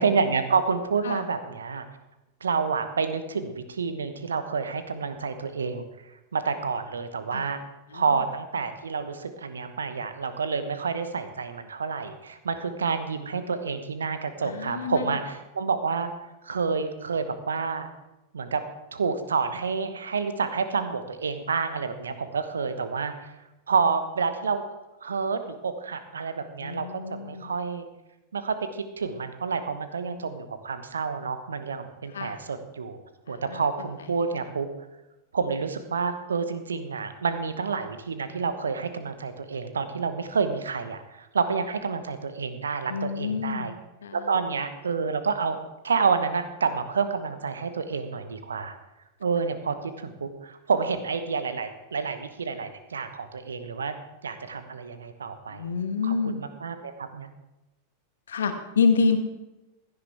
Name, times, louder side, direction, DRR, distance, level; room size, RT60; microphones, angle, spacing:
voice 1, 0.0-1.9 2.4-5.8 6.3-7.6 7.9-16.1 16.4-17.9 18.3-18.6 18.9-23.3 23.7-24.6 25.0-27.9 28.3-33.0 33.3-34.7 35.3-43.7 44.1-48.8 49.2-53.9 54.2-55.7 56.0-56.1 56.6-57.3, right 5 dB, 70° right, 10 dB, 1.0 m, -29 dB
voice 2, 14.4-15.2 26.6-27.5 32.1-32.4 33.3-33.6 42.9-43.8 44.0-44.4 55.5-56.4 58.3-59.2, left 5 dB, 65° left, 7 dB, 1.2 m, -27 dB
16.0 x 10.5 x 3.5 m, 0.99 s
figure-of-eight pair, 90°, 0 cm